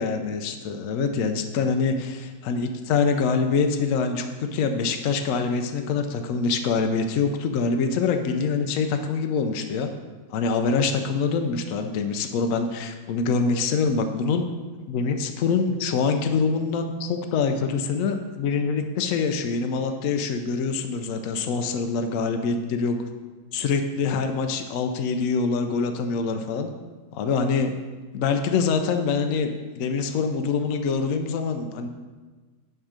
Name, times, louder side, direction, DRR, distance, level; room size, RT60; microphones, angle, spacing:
voice 1, 0.0-9.9 10.3-14.5 14.9-23.0 23.5-26.7 27.1-27.7 28.1-31.9, left 5 dB, 85° left, 6 dB, 0.7 m, -25 dB
9.0 x 3.6 x 5.0 m, 1.3 s
omnidirectional pair, 2.1 m